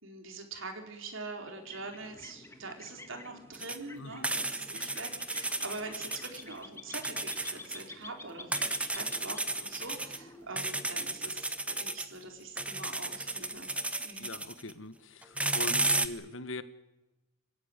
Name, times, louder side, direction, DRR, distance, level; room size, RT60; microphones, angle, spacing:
voice 1, 0.0-13.7 14.0-14.3, right 3 dB, 70° right, 4 dB, 4.2 m, -44 dB
sound 1, 1.4-11.8, left 2 dB, 15° left, 1.9 m, -51 dB
sound 2, 3.5-3.8 4.2-6.4 6.9-7.9 8.5-10.2 10.6-12.1 12.6-14.7 15.2-16.1, right 2 dB, 5° right, 1.1 m, -33 dB
voice 2, 4.0-4.3 14.2-16.6, left 2 dB, 65° left, 12 dB, 1.5 m, -42 dB
25.5 x 16.0 x 9.9 m, 1.0 s
head